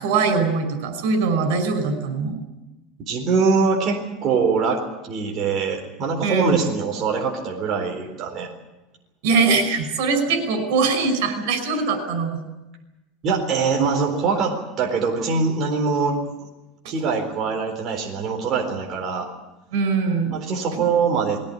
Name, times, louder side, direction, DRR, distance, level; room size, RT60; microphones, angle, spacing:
voice 1, 0.0-2.4 6.2-6.6 9.2-12.4 16.8-16.9 19.7-20.4 20.7-20.8, right 4 dB, 80° right, 8 dB, 5.4 m, -22 dB
voice 2, 3.0-8.5 13.2-16.2 16.9-19.3 20.3-21.4, right 5 dB, 40° right, 1 dB, 4.0 m, -23 dB
21.5 x 17.0 x 9.8 m, 0.99 s
supercardioid pair, 155°, 0 cm